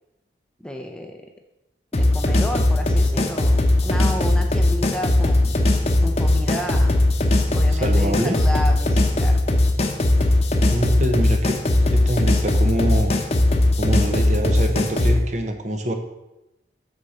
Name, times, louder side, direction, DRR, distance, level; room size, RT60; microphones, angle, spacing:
voice 1, 0.6-1.3 2.0-5.6 6.0-7.0 7.5-9.4, equal, 5° left, 3 dB, 0.5 m, -32 dB
sound 1, 1.9-15.2, left 1 dB, 35° left, 0.8 m, -19 dB
voice 2, 7.8-8.4 10.7-11.6 11.9-13.1 13.8-15.9, right 1 dB, 40° right, 5 dB, 0.9 m, -25 dB
8.3 x 6.4 x 4.3 m, 0.93 s
head